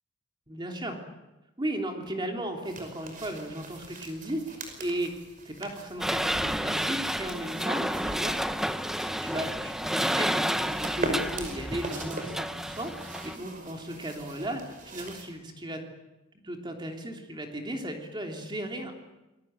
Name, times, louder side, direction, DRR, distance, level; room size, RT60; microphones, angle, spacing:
voice 1, 0.5-1.0 1.6-5.1 5.4-8.6 9.2-15.8 16.4-18.9, right 1 dB, 20° right, 3 dB, 3.2 m, -36 dB
sound 1, 2.6-15.3, right 2 dB, 40° right, 5.6 m, -41 dB
sound 2, 6.0-13.4, equal, ahead, 0.8 m, -30 dB
27.5 x 20.5 x 9.0 m, 1.0 s
head